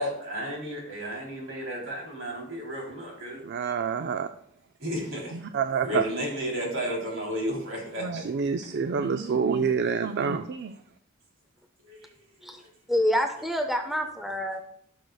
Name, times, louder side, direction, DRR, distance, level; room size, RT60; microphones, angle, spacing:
voice 1, 0.0-3.4 4.8-5.4 5.8-8.2 11.8-12.1 12.4-12.7, equal, 70° right, 3.3 m, -33 dB
voice 2, 3.3-4.3 5.3-6.0 8.0-10.7, right 6 dB, 55° right, 0.4 m, -27 dB
voice 3, 12.9-14.6, equal, ahead, 0.6 m, -27 dB
14.5 x 6.5 x 2.3 m
head